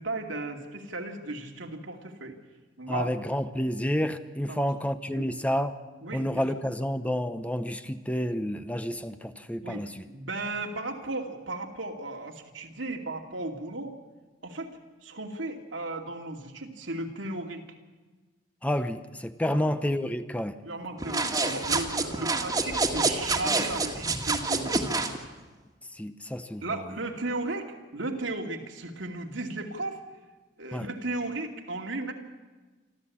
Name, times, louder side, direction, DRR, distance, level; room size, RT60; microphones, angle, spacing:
voice 1, 0.0-2.4 2.8-3.1 4.5-4.7 5.1-5.3 6.0-6.4 9.6-13.9 14.4-17.6 19.5-19.8 20.6-24.8 26.6-30.0 30.6-32.1, right 2 dB, 85° right, 2 dB, 2.7 m, -35 dB
voice 2, 2.9-5.7 6.1-10.0 18.6-20.6 25.9-26.6 30.7-30.9, equal, 5° left, 10 dB, 0.8 m, -29 dB
sound 1, 21.0-25.2, right 3 dB, 20° right, 1.8 m, -27 dB
26.5 x 13.5 x 8.6 m, 1.3 s
head